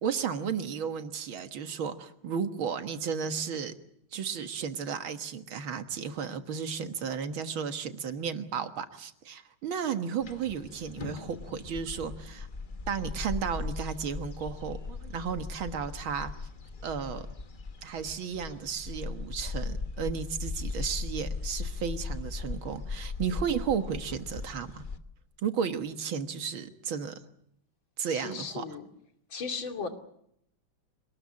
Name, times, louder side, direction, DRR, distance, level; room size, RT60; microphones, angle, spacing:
voice 1, 0.0-3.7 4.1-12.5 12.9-16.3 16.8-17.3 17.8-24.8 25.4-27.2 28.0-28.7, right 7 dB, 75° right, 9 dB, 2.3 m, -33 dB
sound 1, 10.2-25.0, left 4 dB, 30° left, 1.0 m, -38 dB
voice 2, 28.1-28.9 29.3-29.9, left 5 dB, 70° left, 5 dB, 3.3 m, -36 dB
26.0 x 19.5 x 8.6 m, 0.73 s
omnidirectional pair, 2.2 m